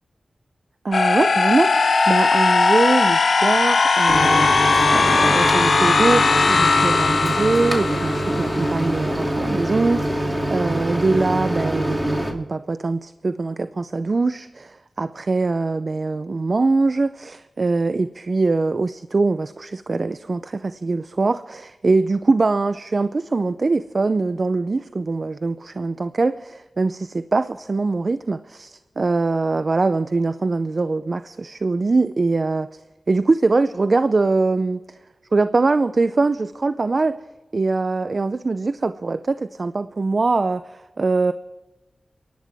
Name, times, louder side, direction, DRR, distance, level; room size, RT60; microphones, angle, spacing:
voice 1, 0.8-32.8 33.1-35.0 35.3-37.2 37.5-41.3, right 3 dB, 55° right, 12 dB, 0.5 m, -22 dB
sound 1, 0.9-8.8, left 4 dB, 75° left, 0.9 m, -18 dB
Microwave oven, 4.1-12.3, right 1 dB, 15° right, 2.6 m, -24 dB
29.0 x 11.5 x 3.5 m, 1.1 s
cardioid pair, 45°, 0 cm